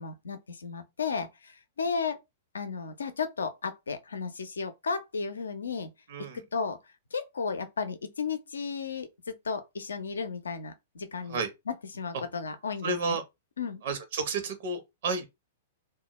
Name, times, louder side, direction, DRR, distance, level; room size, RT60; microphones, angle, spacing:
voice 1, 0.0-2.2 2.5-5.9 6.3-6.8 7.1-11.4 11.7-13.2 13.6-13.8, left 5 dB, 80° left, 0.4 m, -34 dB
voice 2, 6.1-6.4 11.3-11.5 12.8-13.2 13.8-15.2, right 4 dB, 60° right, 0.9 m, -31 dB
2.2 x 2.1 x 3.0 m
hypercardioid pair, 110°, 0 cm